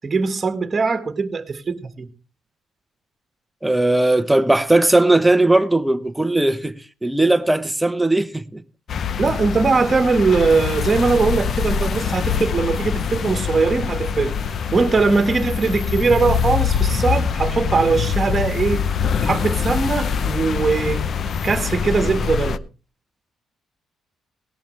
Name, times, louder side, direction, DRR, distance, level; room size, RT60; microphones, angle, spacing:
voice 1, 0.0-2.1 9.2-14.3 14.7-18.8 19.2-21.0 21.4-22.6, right 4 dB, 30° right, 1.8 m, -20 dB
voice 2, 3.6-8.6, right 2 dB, 10° right, 0.9 m, -18 dB
sound 1, 8.9-22.6, left 7 dB, 55° left, 0.7 m, -24 dB
18.5 x 11.5 x 3.3 m
cardioid pair, 90°, 0 cm